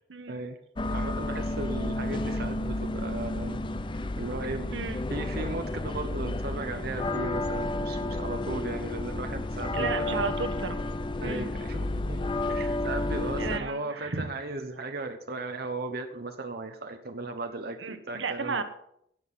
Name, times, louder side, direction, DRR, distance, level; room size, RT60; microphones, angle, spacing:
voice 1, 0.3-0.6 0.9-3.6 4.2-4.8 5.1-10.3 11.2-18.6, right 2 dB, 55° right, 5 dB, 1.0 m, -36 dB
sound 1, 0.8-13.6, left 2 dB, 25° left, 0.6 m, -31 dB
voice 2, 9.7-10.8 11.2-11.5 13.4-14.2 17.8-18.6, right 4 dB, 80° right, 9 dB, 1.2 m, -33 dB
18.0 x 6.2 x 5.6 m, 0.71 s
head